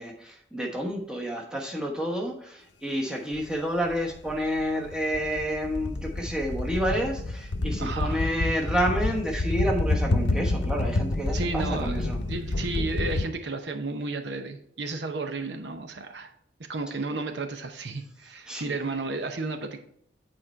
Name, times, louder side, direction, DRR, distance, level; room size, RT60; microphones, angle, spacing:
voice 1, 0.0-12.2 18.5-18.7, equal, 5° right, 0 dB, 1.2 m, -29 dB
sound 1, 3.4-3.5 3.8-13.2, left 2 dB, 75° left, 0.7 m, -28 dB
voice 2, 7.8-8.2 11.3-12.0 12.2-16.3 16.7-19.8, right 3 dB, 70° right, 6 dB, 0.8 m, -33 dB
8.8 x 4.3 x 4.4 m, 0.67 s
head